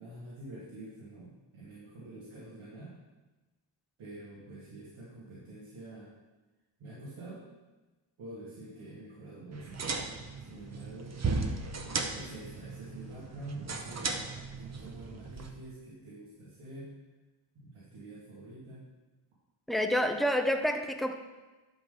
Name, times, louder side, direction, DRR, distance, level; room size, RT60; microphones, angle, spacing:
voice 1, 0.0-2.9 4.0-6.1 6.8-7.4 8.2-9.8 10.4-11.2 12.1-17.0 17.5-18.9, right 2 dB, 80° right, -8 dB, 2.8 m, -47 dB
sound 1, 9.5-15.5, right 4 dB, 35° right, 1.0 m, -36 dB
voice 2, 19.7-21.2, equal, ahead, 5 dB, 0.7 m, -28 dB
11.5 x 3.9 x 6.9 m, 1.2 s
cardioid pair, 110°, 47 cm